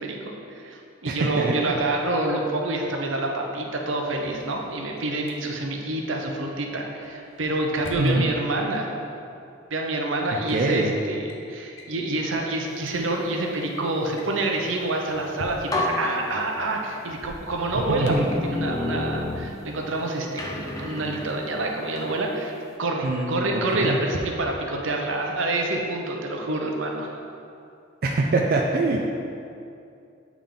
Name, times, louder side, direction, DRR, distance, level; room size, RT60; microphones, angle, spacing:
voice 1, 0.0-8.9 9.7-18.1 18.4-22.5 22.8-27.2, right 2 dB, 75° right, 1 dB, 0.7 m, -27 dB
voice 2, 1.1-1.8 8.0-8.3 10.3-10.9 17.7-18.2 23.0-24.0 28.0-29.1, right 2 dB, 50° right, -1 dB, 0.4 m, -24 dB
Drawer open or close, 4.0-5.4 7.0-8.2 9.5-9.6 10.4-10.7 11.0-11.4 11.8-12.0 12.5-12.6 12.8-13.0 14.0-15.9 17.1-18.4, left 1 dB, 85° left, 0.7 m, -43 dB
sound 1, 15.1-15.3 15.7-17.0 17.6-20.0 20.4-22.2, left 2 dB, 15° left, 0.4 m, -31 dB
8.6 x 3.6 x 3.7 m, 2.6 s
head